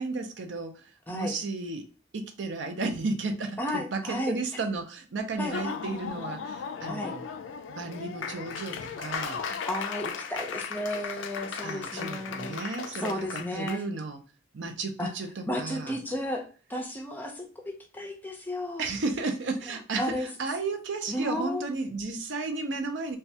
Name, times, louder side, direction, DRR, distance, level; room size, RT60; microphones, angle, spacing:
voice 1, 0.0-1.9 2.1-7.2 7.7-9.4 11.6-14.2 14.5-16.0 18.8-23.2, right 3 dB, 70° right, 6 dB, 0.5 m, -33 dB
voice 2, 3.6-4.4 5.4-5.7 6.8-7.1 9.7-12.6 13.0-13.8 15.0-15.1 15.5-18.9 19.6-20.3 21.1-21.7, left 1 dB, 10° left, 3 dB, 0.5 m, -33 dB
Laughter / Applause, 5.4-13.8, left 6 dB, 75° left, 0.3 m, -36 dB
3.1 x 2.3 x 2.7 m, 0.38 s
head